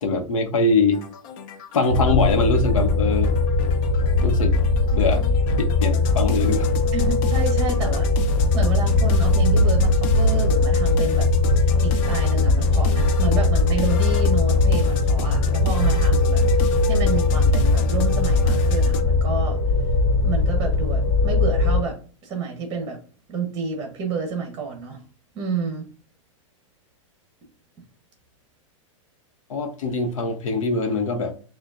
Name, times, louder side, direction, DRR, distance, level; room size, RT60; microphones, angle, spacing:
voice 1, 0.0-1.0 1.7-3.3 4.2-4.6 4.9-5.2 5.6-6.7 29.5-31.3, left 3 dB, 80° left, 6 dB, 1.0 m, -22 dB
sound 1, 0.9-19.0, left 7 dB, 40° left, 0.6 m, -34 dB
sound 2, 1.9-21.8, left 2 dB, 65° left, 1.3 m, -19 dB
voice 2, 6.9-8.1 8.5-16.5 16.8-19.6 20.2-23.0 23.3-25.0 25.3-25.9, right 4 dB, 20° right, 2 dB, 1.1 m, -30 dB
6.7 x 2.4 x 2.5 m, 0.40 s
supercardioid pair, 145°, 17 cm